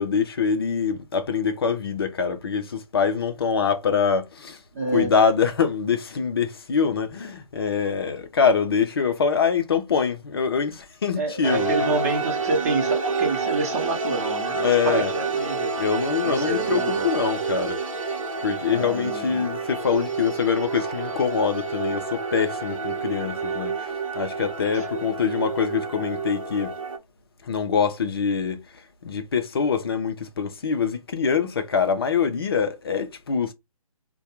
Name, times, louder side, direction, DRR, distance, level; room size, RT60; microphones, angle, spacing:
voice 1, 0.0-4.6 4.9-11.9 14.6-15.1 15.8-18.1 18.4-26.7 27.4-28.6 29.0-33.5, left 6 dB, 40° left, 0.6 m, -24 dB
voice 2, 4.7-5.1 11.2-15.7 16.2-17.1 18.7-19.5 24.7-24.9, right 3 dB, 25° right, 0.9 m, -28 dB
sound 1, 11.4-27.0, right 4 dB, 60° right, 0.8 m, -29 dB
3.3 x 2.3 x 2.8 m
figure-of-eight pair, 145°, 19 cm